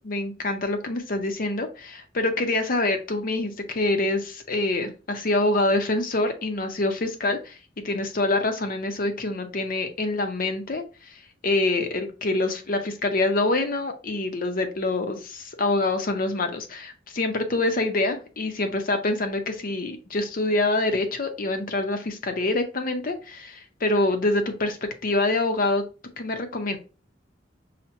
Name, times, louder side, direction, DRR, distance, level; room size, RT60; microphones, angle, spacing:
voice 1, 0.0-7.6 7.8-24.8 25.0-25.8 26.2-26.8, left 2 dB, 50° left, 6 dB, 0.7 m, -26 dB
5.8 x 2.1 x 2.6 m, 0.33 s
head